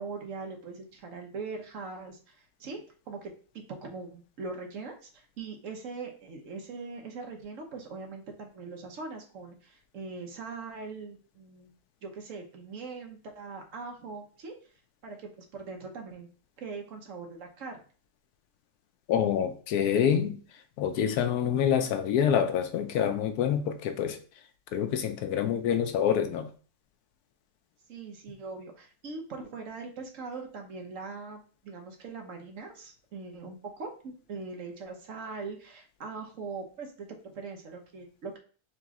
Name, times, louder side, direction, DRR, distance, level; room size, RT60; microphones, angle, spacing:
voice 1, 0.0-3.3 3.7-11.7 12.0-14.5 15.0-16.3 16.6-17.8 27.9-38.4, right 4 dB, 60° right, 1.1 m, -41 dB
voice 2, 19.1-20.4 20.8-24.2 24.7-26.5, left 8 dB, 85° left, 1.1 m, -26 dB
3.8 x 3.0 x 3.5 m
omnidirectional pair, 1.6 m